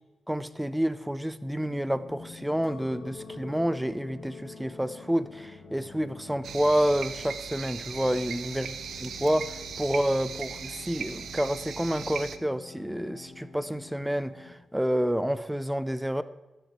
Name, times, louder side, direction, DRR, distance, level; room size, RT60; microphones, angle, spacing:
voice 1, 0.3-8.7 9.0-16.2, equal, 5° right, 14 dB, 0.4 m, -29 dB
sound 1, 1.5-14.5, left 4 dB, 50° left, 1.8 m, -48 dB
Chink clink, 2.6-6.9 7.4-8.0, left 3 dB, 70° left, 2.2 m, -49 dB
sound 2, 6.4-12.4, right 7 dB, 75° right, 0.6 m, -38 dB
13.0 x 8.8 x 4.3 m, 1.1 s
wide cardioid pair, 140°, 0 cm